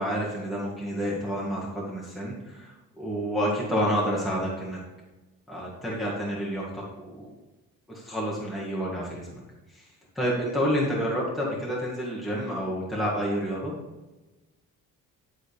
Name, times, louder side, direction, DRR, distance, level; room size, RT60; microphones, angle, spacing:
voice 1, 0.0-4.8 5.5-7.3 7.9-9.4 9.7-9.9 10.2-13.7, equal, ahead, -6 dB, 1.7 m, -29 dB
11.0 x 3.9 x 5.1 m, 1.1 s
cardioid pair, 140°, 33 cm